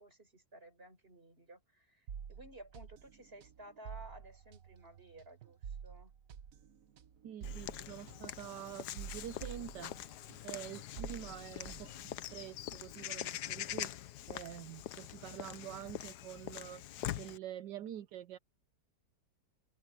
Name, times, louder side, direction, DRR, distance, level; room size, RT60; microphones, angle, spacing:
voice 1, 0.0-6.1, right 1 dB, 30° right, 5.4 m, -55 dB
sound 1, 2.1-10.5 10.7-12.7, right 7 dB, 60° right, 1.2 m, -49 dB
voice 2, 7.2-10.1 10.4-11.9 12.3-16.9 17.2-18.4, right 11 dB, 80° right, 1.4 m, -47 dB
Walk footsteps / Bird vocalization bird call bird song, 7.4-17.4, left 13 dB, 70° left, 1.2 m, -44 dB
omnidirectional pair, 1.9 m